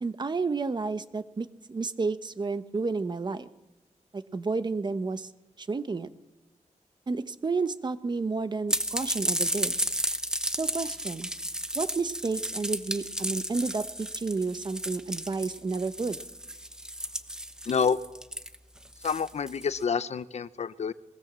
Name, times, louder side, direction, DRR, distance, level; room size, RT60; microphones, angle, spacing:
voice 1, 0.0-3.5 4.1-5.3 5.6-6.1 7.1-9.8 10.6-11.3 11.7-16.2, right 4 dB, 35° right, 12 dB, 1.0 m, -31 dB
sound 1, 8.7-19.8, right 1 dB, 5° right, 1.1 m, -33 dB
voice 2, 17.7-18.0 19.0-20.9, left 6 dB, 60° left, 14 dB, 0.9 m, -28 dB
22.0 x 22.0 x 7.5 m, 1.0 s
wide cardioid pair, 160°, 13 cm